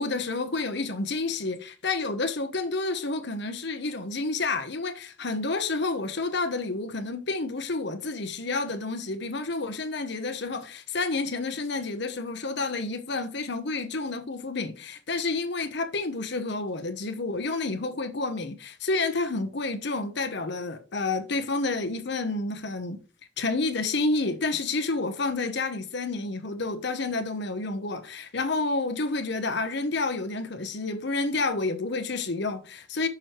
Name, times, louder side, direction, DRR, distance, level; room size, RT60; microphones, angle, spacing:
voice 1, 0.0-23.0 23.4-33.1, left 3 dB, 60° left, 1.1 m, -29 dB
6.3 x 4.8 x 4.6 m
head